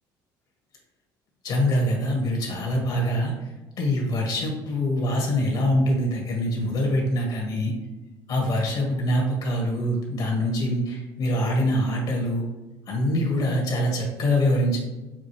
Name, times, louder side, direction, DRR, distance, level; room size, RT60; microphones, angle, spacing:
voice 1, 1.4-3.5 3.8-7.7 8.3-12.4 12.9-14.8, equal, 65° left, -1 dB, 1.3 m, -24 dB
6.0 x 2.4 x 3.2 m, 1.1 s
supercardioid pair, 95°, 9 cm